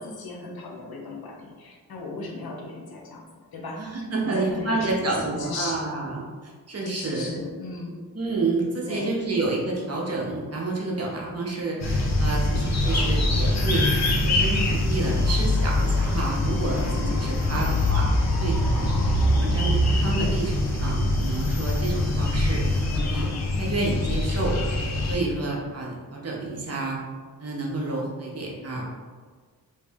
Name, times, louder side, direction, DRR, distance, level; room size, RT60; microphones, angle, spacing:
voice 1, 0.0-3.2 3.5-3.9 4.2-5.9 6.9-8.0 8.9-9.2 17.5-17.7, left 2 dB, 90° left, 0 dB, 0.7 m, -36 dB
voice 2, 3.8-7.4 8.1-13.9 14.2-18.0 18.4-18.9 19.3-22.7 23.0-24.6 25.0-27.0 27.4-28.8, right 2 dB, 45° right, -3 dB, 0.8 m, -29 dB
sound 1, 11.8-25.2, left 1 dB, 45° left, 0.6 m, -23 dB
3.2 x 2.7 x 3.4 m, 1.5 s
wide cardioid pair, 135°, 36 cm